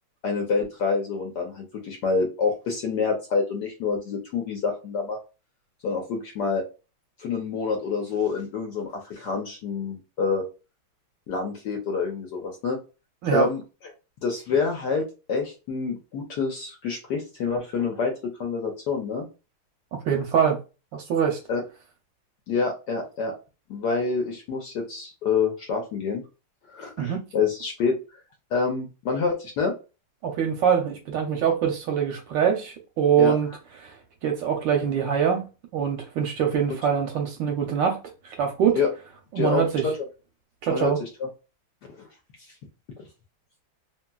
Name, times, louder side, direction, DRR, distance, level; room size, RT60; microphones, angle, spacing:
voice 1, 0.2-5.2 5.8-6.6 7.2-10.4 11.3-12.8 13.3-13.6 14.2-19.3 21.5-21.6 22.5-23.3 23.7-26.2 26.7-27.9 28.5-29.7 33.2-33.3 38.7-38.9 39.4-39.9 40.7-41.3 42.0-42.1, left 5 dB, 70° left, 1.0 m, -27 dB
voice 2, 20.0-20.6 20.9-21.4 27.0-27.2 30.2-33.5 33.8-33.9 34.2-35.5 35.7-38.0 38.2-38.8 39.3-39.8 40.6-41.0, right 8 dB, 75° right, 1.1 m, -23 dB
2.9 x 2.8 x 2.2 m
omnidirectional pair, 2.3 m